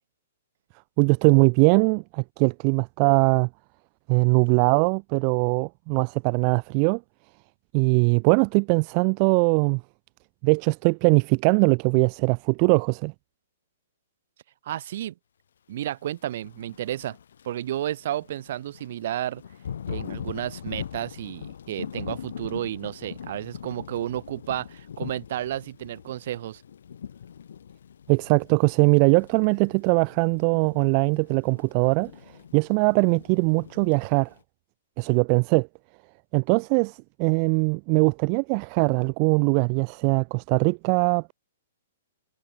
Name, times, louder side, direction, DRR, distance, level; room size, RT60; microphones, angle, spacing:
voice 1, 1.0-3.5 4.1-7.0 7.7-9.8 10.4-13.1 28.1-32.1 32.5-34.3 35.0-35.7 36.3-41.3, right 40 dB or more, 20° right, 0.6 m, -21 dB
voice 2, 14.6-15.1 15.7-17.2 17.4-19.4 19.9-26.6, right 12 dB, 40° right, 2.5 m, -32 dB
Thunder / Rain, 16.3-34.4, left 8 dB, 65° left, 2.3 m, -41 dB
hypercardioid pair, 180°, 0 cm